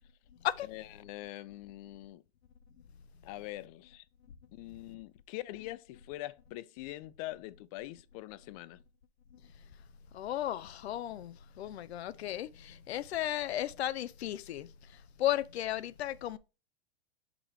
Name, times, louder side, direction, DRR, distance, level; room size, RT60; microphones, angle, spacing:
voice 1, 0.6-2.2 3.2-4.0 4.5-8.8, left 17 dB, 35° left, 0.4 m, -43 dB
voice 2, 10.1-14.7 15.2-16.4, left 12 dB, 90° left, 0.6 m, -34 dB
6.0 x 3.3 x 4.7 m
hypercardioid pair, 135°, 31 cm